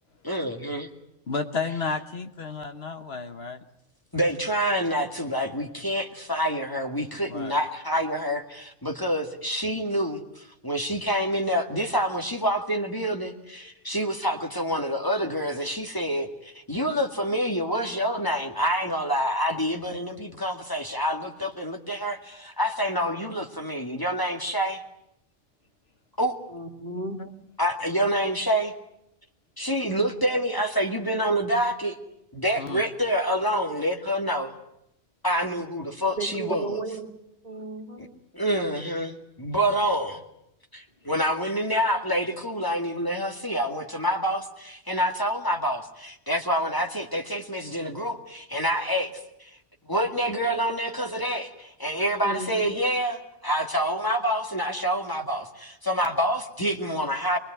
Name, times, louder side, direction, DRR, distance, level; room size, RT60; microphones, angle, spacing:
voice 1, 0.2-0.9 4.1-24.8 26.2-26.4 27.6-28.7 29.6-32.0 32.3-34.5 35.2-36.8 38.0-38.1 38.3-39.1 39.4-40.2 40.7-49.1 49.4-49.5 49.9-57.4, equal, 20° left, 4 dB, 2.2 m, -27 dB
voice 2, 1.3-3.6 7.3-7.6 27.2-27.3 32.6-32.8, left 4 dB, 60° left, 8 dB, 1.5 m, -32 dB
voice 3, 26.5-27.2 36.1-37.1 37.4-38.1 52.2-52.6, right 2 dB, 35° right, 4 dB, 3.0 m, -34 dB
24.0 x 20.5 x 9.2 m, 0.79 s
omnidirectional pair, 1.2 m